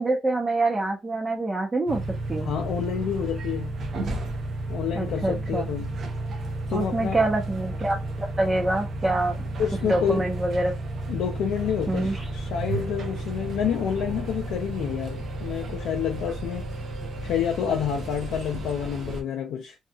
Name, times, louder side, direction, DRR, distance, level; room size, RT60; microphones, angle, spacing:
voice 1, 0.0-2.0 2.3-2.5 5.0-5.7 6.7-9.4 9.8-10.7 11.9-12.3, right 2 dB, 25° right, 0.8 m, -26 dB
sound 1, 1.9-19.2, right 2 dB, 60° right, 0.7 m, -32 dB
voice 2, 2.4-3.7 4.7-5.9 6.7-7.2 9.6-10.3 11.1-16.7 17.2-19.8, left 8 dB, 85° left, 0.4 m, -28 dB
2.8 x 2.3 x 2.3 m
cardioid pair, 90°, 0 cm